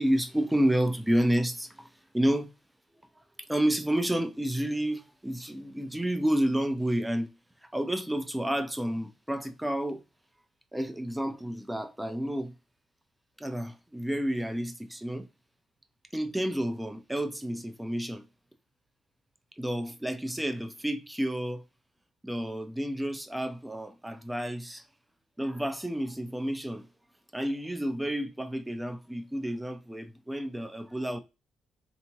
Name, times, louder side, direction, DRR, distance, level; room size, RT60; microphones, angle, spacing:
voice 1, 0.0-1.9 2.1-2.5 3.5-7.3 7.6-10.0 10.7-12.5 13.4-15.3 16.1-18.2 19.6-21.6 22.2-24.9 25.4-26.9 27.3-31.2, right 1 dB, 5° right, 0.6 m, -30 dB
3.4 x 2.8 x 2.8 m
cardioid pair, 90°, 0 cm